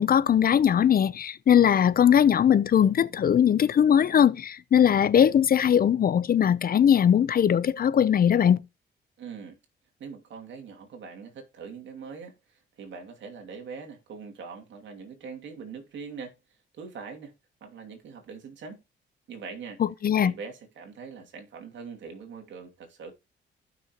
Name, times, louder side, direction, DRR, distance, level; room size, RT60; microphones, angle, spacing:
voice 1, 0.0-8.6 19.8-20.3, left 9 dB, 50° left, 0.7 m, -20 dB
voice 2, 9.2-9.6 10.0-16.4 16.7-17.3 17.6-18.8 19.3-19.8 20.2-23.1, right 5 dB, 70° right, 2.7 m, -42 dB
15.5 x 6.2 x 3.0 m
cardioid pair, 90°, 20 cm